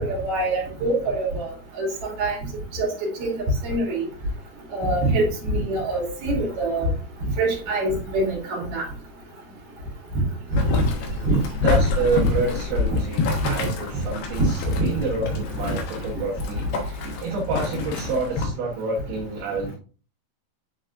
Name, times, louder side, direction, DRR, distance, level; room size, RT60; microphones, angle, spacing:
voice 1, 0.0-1.5 1.8-2.4 2.7-3.3 3.6-4.0 4.7-6.9 7.4-8.8 10.7-10.9 11.2-11.4 12.9-13.0 14.4-14.8, right 2 dB, 55° right, -3 dB, 3.9 m, -24 dB
Boiling, 10.5-18.5, left 4 dB, 70° left, 3.0 m, -27 dB
voice 2, 11.6-19.8, right 3 dB, 70° right, -4 dB, 3.1 m, -28 dB
9.8 x 4.0 x 2.5 m, 0.36 s
omnidirectional pair, 5.0 m